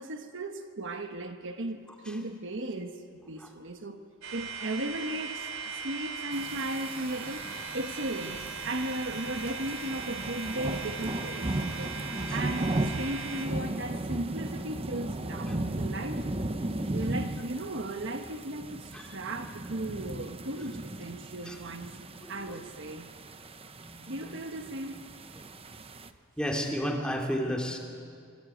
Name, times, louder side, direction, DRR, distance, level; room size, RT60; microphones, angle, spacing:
voice 1, 0.0-4.0 4.3-7.5 7.7-12.0 12.3-16.2 16.9-22.0 22.3-23.1 24.1-25.1, right 1 dB, 65° right, 6 dB, 1.3 m, -36 dB
sound 1, 4.2-13.5, right 4 dB, 85° right, 4.1 m, -39 dB
sound 2, 6.3-26.1, right 1 dB, 30° right, 1.0 m, -36 dB
voice 2, 22.2-22.6 23.8-24.4 26.4-27.8, equal, 5° left, 0 dB, 3.3 m, -33 dB
26.0 x 19.5 x 9.3 m, 2.2 s
head